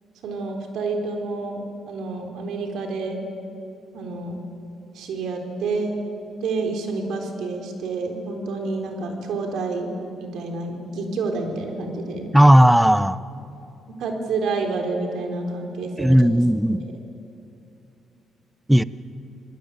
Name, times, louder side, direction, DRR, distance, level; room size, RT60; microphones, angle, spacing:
voice 1, 0.2-3.2 3.9-4.4 4.9-6.0 6.4-9.9 10.2-12.3 14.0-16.2, right 3 dB, 75° right, 4 dB, 4.0 m, -28 dB
voice 2, 12.3-13.2 16.0-16.8 18.7-18.8, equal, 5° right, 16 dB, 0.7 m, -15 dB
27.5 x 19.5 x 8.9 m, 2.8 s
cardioid pair, 90°, 0 cm